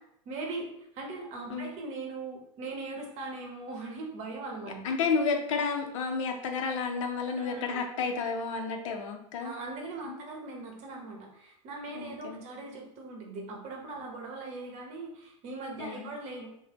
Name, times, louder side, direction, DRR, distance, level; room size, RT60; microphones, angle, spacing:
voice 1, 0.3-4.8 7.4-7.8 9.4-16.5, right 3 dB, 40° right, 0 dB, 0.9 m, -40 dB
voice 2, 4.8-9.5 10.0-10.2 11.9-12.4 15.8-16.1, left 5 dB, 70° left, 4 dB, 0.6 m, -31 dB
3.1 x 2.1 x 2.9 m, 0.76 s
hypercardioid pair, 105°, 17 cm